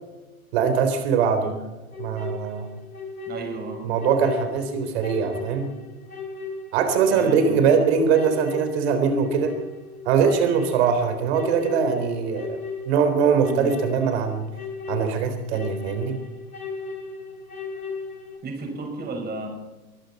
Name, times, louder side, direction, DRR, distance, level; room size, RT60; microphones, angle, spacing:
voice 1, 0.5-1.5 2.0-2.7 3.8-5.7 6.7-9.5 10.1-12.6 12.9-14.4 14.9-16.2, right 6 dB, 45° right, 8 dB, 3.9 m, -22 dB
sound 1, 1.9-18.4, left 4 dB, 90° left, 4.0 m, -36 dB
voice 2, 3.3-3.9 7.1-7.7 13.5-13.7 18.4-19.5, right 3 dB, 20° right, 3 dB, 5.7 m, -33 dB
23.5 x 14.5 x 4.2 m, 1.1 s
figure-of-eight pair, 105°, 43 cm